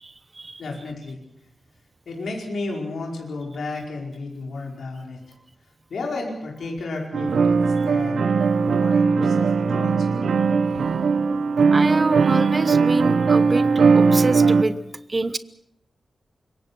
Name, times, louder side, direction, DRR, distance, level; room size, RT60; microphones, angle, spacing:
voice 1, 0.0-0.6 11.7-13.7 13.9-14.8 15.1-15.4, right 3 dB, 25° right, 14 dB, 0.9 m, -26 dB
voice 2, 0.6-1.2 2.0-5.2 5.9-8.4 8.8-10.3, left 3 dB, 70° left, 0 dB, 5.0 m, -32 dB
sound 1, 7.1-14.6, right 5 dB, 70° right, 1.3 m, -19 dB
25.5 x 22.5 x 6.2 m, 0.78 s
wide cardioid pair, 175°, 0 cm